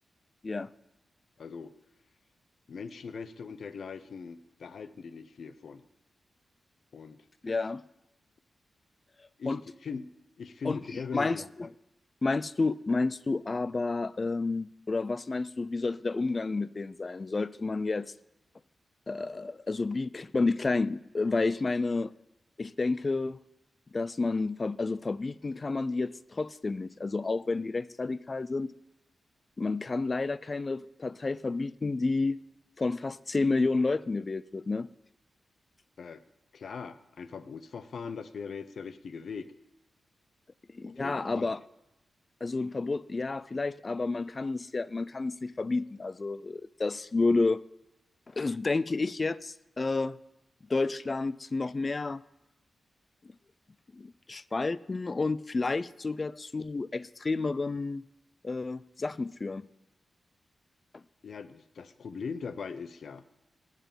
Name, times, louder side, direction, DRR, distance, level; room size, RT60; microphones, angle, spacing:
voice 1, 1.4-1.7 2.7-5.8 6.9-7.2 9.4-9.6 9.8-10.1 10.4-11.4 36.0-36.2 36.5-39.5 40.9-41.5 61.2-63.2, left 5 dB, 60° left, 13 dB, 0.7 m, -40 dB
voice 2, 7.4-7.8 9.5-9.6 10.6-11.7 12.2-18.1 19.1-22.1 22.6-23.4 23.9-28.7 29.6-32.4 32.8-34.9 40.7-41.6 42.4-47.6 48.3-50.2 50.7-52.2 53.9-58.0 58.4-59.7 60.9-61.0, left 3 dB, 30° left, 18 dB, 0.4 m, -30 dB
10.5 x 8.2 x 8.9 m, 0.92 s
wide cardioid pair, 155°, 0 cm